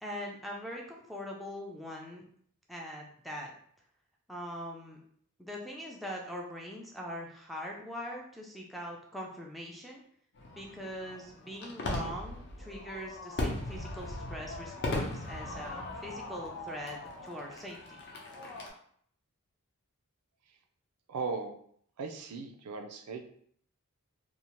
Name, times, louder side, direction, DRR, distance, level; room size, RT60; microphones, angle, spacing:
voice 1, 0.0-2.2 2.7-3.5 4.3-5.0 5.4-10.0 10.6-18.0, equal, ahead, -2 dB, 0.3 m, -42 dB
Fireworks, 10.3-18.7, left 2 dB, 50° left, 0.6 m, -38 dB
voice 2, 21.1-21.5 22.0-23.2, right 4 dB, 90° right, 5 dB, 0.4 m, -37 dB
2.7 x 2.1 x 2.9 m, 0.63 s
head